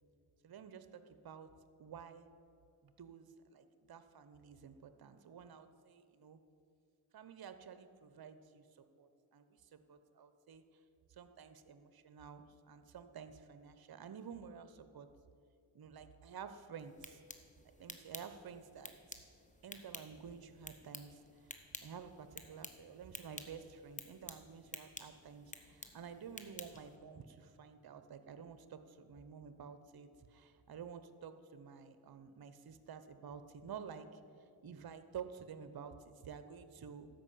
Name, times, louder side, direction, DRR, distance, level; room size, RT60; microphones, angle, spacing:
voice 1, 0.4-1.5 1.8-2.3 2.8-6.4 7.1-8.7 9.0-10.6 11.1-15.1 15.7-17.2 17.8-18.9 19.6-21.5 21.8-37.1, right 7 dB, 50° right, 11 dB, 0.9 m, -51 dB
sound 1, 16.8-27.0, left 2 dB, 15° left, 1.2 m, -52 dB
13.0 x 5.5 x 8.5 m, 2.3 s
supercardioid pair, 40°, 48 cm